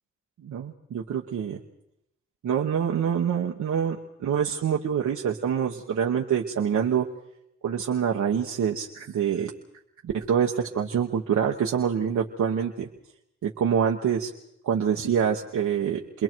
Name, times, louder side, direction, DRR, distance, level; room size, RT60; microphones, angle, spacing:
voice 1, 0.4-1.6 2.4-7.1 7.6-9.5 10.0-12.9 13.4-14.3 14.6-16.2, right 8 dB, 85° right, 0 dB, 1.2 m, -26 dB
29.5 x 22.0 x 4.6 m, 0.82 s
supercardioid pair, 40°, 29 cm